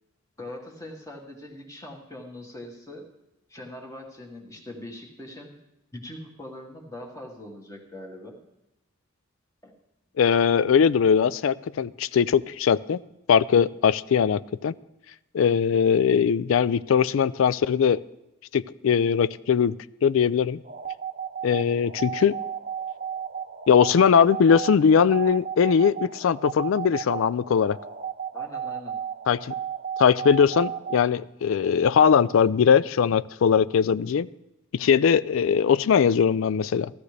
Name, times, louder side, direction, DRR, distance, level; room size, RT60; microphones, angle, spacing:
voice 1, 0.4-3.1 3.5-5.5 5.9-8.4 9.6-9.7 28.3-29.0, left 1 dB, 15° left, 0 dB, 1.6 m, -41 dB
voice 2, 10.2-13.0 13.3-14.7 15.3-18.0 18.5-19.7 20.0-20.6 21.4-22.4 23.7-27.8 29.3-29.5 30.0-34.3 34.7-36.9, left 7 dB, 70° left, 18 dB, 0.3 m, -20 dB
sound 1, 20.6-31.1, right 8 dB, 40° right, 0.8 m, -34 dB
16.0 x 13.5 x 3.3 m, 0.93 s
head